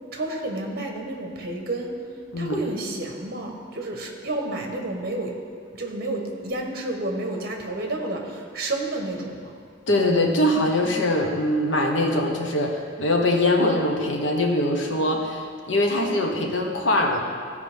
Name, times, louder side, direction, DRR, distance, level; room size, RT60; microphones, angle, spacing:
voice 1, 0.1-1.9 2.4-5.3 5.7-9.5, right 2 dB, 55° right, 2 dB, 1.2 m, -30 dB
voice 2, 9.9-17.2, left 1 dB, 90° left, 1 dB, 1.1 m, -22 dB
15.0 x 5.0 x 3.5 m, 2.1 s
head